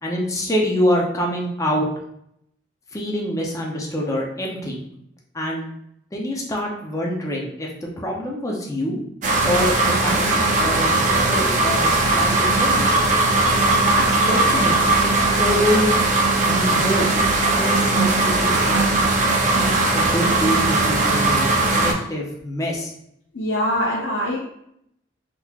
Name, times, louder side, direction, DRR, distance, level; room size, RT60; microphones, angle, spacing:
voice 1, 0.0-1.9 2.9-4.8 5.3-5.6 6.1-9.0 9.4-12.9 13.5-15.1 15.4-15.9 16.4-17.2 17.6-18.9 19.4-22.9, equal, 15° left, -1 dB, 0.5 m, -26 dB
sound 1, 9.2-21.9, right 2 dB, 40° right, 0.5 m, -19 dB
voice 2, 23.3-24.4, equal, 75° left, -4 dB, 0.6 m, -23 dB
3.7 x 2.9 x 2.3 m, 0.75 s
head